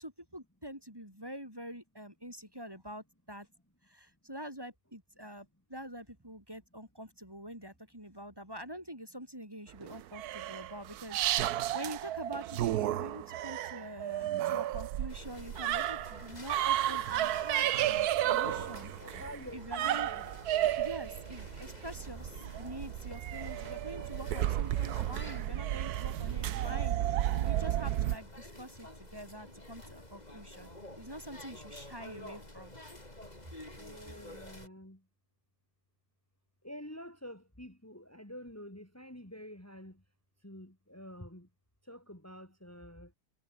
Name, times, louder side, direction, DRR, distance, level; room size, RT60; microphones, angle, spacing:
voice 1, 0.0-3.5 3.9-19.2 19.5-20.1 20.8-30.7 31.0-32.9, equal, 15° right, 5.2 m, -46 dB
sound 1, 9.8-28.2, right 13 dB, 75° right, 1.2 m, -33 dB
sound 2, 15.1-34.7, left 1 dB, 25° left, 5.5 m, -50 dB
voice 2, 18.2-18.7 19.0-20.7 33.8-35.0 36.6-39.9 40.4-41.5 41.9-43.1, equal, 10° left, 4.0 m, -48 dB
omnidirectional pair, 1.7 m